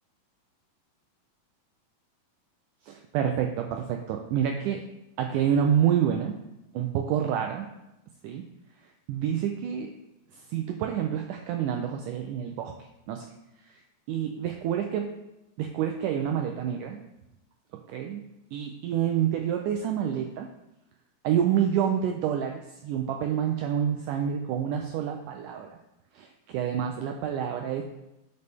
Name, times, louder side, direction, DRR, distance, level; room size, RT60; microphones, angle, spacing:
voice 1, 2.8-4.8 5.2-6.3 6.7-7.7 8.2-8.4 9.1-9.9 10.3-12.7 13.1-13.3 13.6-13.8 14.1-15.1 15.6-17.0 17.9-18.2 18.5-20.5 21.2-25.7 26.1-27.8, right 9 dB, 80° right, 4 dB, 1.9 m, -28 dB
10.5 x 5.4 x 3.5 m, 0.93 s
omnidirectional pair, 4.0 m